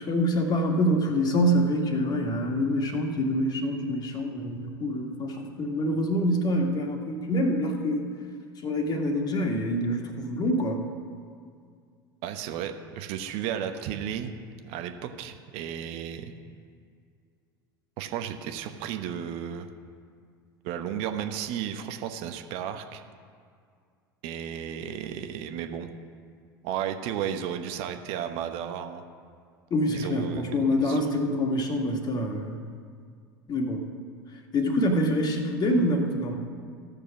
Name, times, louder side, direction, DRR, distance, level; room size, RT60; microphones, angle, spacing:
voice 1, 0.0-8.1 8.6-10.8 29.7-32.6 33.5-33.9 34.5-36.4, equal, 35° left, 3 dB, 1.9 m, -26 dB
voice 2, 12.2-16.3 18.0-19.7 20.6-23.0 24.2-25.9 26.6-29.0 29.9-31.0, right 9 dB, 55° right, 7 dB, 1.0 m, -34 dB
15.5 x 6.8 x 6.0 m, 2.2 s
hypercardioid pair, 75°, 12 cm